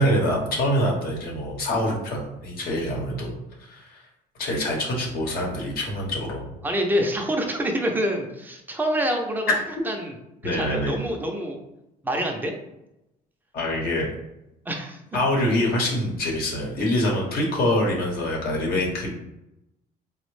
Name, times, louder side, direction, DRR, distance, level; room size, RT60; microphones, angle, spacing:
voice 1, 0.0-3.3 3.6-4.0 4.4-6.5 10.4-11.0 13.5-14.1 15.1-19.1, left 1 dB, 65° left, -1 dB, 0.9 m, -25 dB
voice 2, 6.6-9.5 9.9-10.2 10.5-11.6 12.0-12.5 14.7-15.0, equal, 10° right, 2 dB, 0.5 m, -26 dB
3.3 x 2.1 x 3.1 m, 0.88 s
cardioid pair, 110°, 17 cm